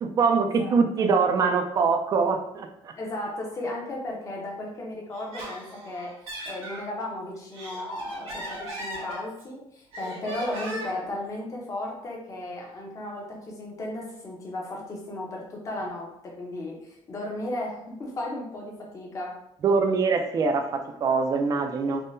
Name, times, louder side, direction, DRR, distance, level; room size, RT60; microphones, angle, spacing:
voice 1, 0.0-2.7 19.6-22.0, right 5 dB, 35° right, 6 dB, 0.3 m, -23 dB
voice 2, 0.6-1.1 2.9-6.1 6.5-19.4, left 1 dB, 30° left, -1 dB, 0.7 m, -35 dB
Laughter, 5.1-6.8 7.3-9.5 9.9-11.1, right 1 dB, 75° right, 1.1 m, -38 dB
3.6 x 2.1 x 2.6 m, 0.73 s
cardioid pair, 155°, 10 cm